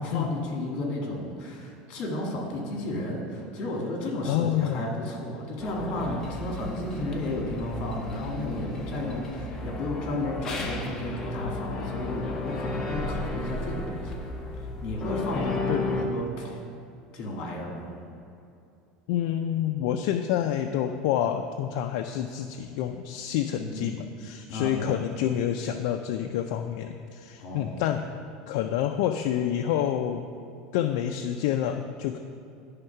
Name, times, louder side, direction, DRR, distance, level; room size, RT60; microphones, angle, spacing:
voice 1, 0.0-14.3 14.8-16.6 17.1-17.9 23.5-23.9 24.5-25.0 27.4-27.8, left 1 dB, 40° left, -1 dB, 1.7 m, -33 dB
voice 2, 4.2-5.1 15.7-16.0 19.1-28.0 28.5-30.2 30.7-32.2, left 10 dB, 60° left, 5 dB, 0.3 m, -28 dB
sound 1, 5.6-16.1, left 3 dB, 20° left, 0.7 m, -34 dB
10.5 x 3.6 x 5.6 m, 2.6 s
cardioid pair, 175°, 3 cm